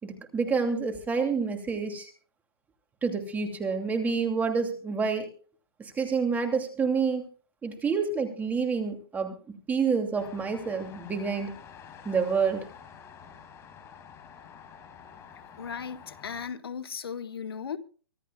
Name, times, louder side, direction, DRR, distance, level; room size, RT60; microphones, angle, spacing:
voice 1, 0.0-2.1 3.0-5.3 5.8-7.3 7.6-11.5 12.0-12.7, right 5 dB, 15° right, 2.7 m, -28 dB
sound 1, 10.2-16.5, left 7 dB, 20° left, 4.3 m, -49 dB
voice 2, 15.6-17.8, left 7 dB, 80° left, 1.6 m, -36 dB
24.5 x 13.5 x 2.4 m
hypercardioid pair, 135°, 12 cm